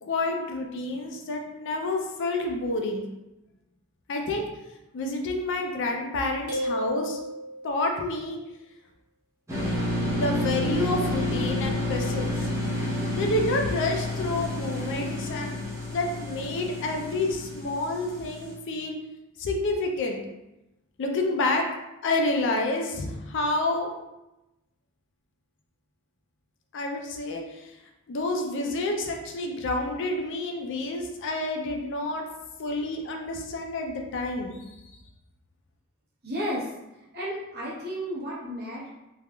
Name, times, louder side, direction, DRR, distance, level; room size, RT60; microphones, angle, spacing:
voice 1, 0.0-3.0 4.1-4.5 4.9-7.2 7.6-8.4 9.9-12.3 13.2-15.6 15.9-18.9 19.4-20.2 21.0-21.6 22.0-23.9 26.7-27.7 28.1-32.2 32.6-34.6, left 2 dB, 55° left, 2 dB, 0.4 m, -29 dB
sound 1, 6.5-8.0, equal, 70° right, 1.2 m, -32 dB
sound 2, 9.5-18.5, left 1 dB, 15° right, 0.7 m, -30 dB
voice 2, 36.2-36.7 37.1-38.9, equal, 45° right, -6 dB, 0.9 m, -32 dB
3.3 x 2.3 x 2.2 m, 0.97 s
head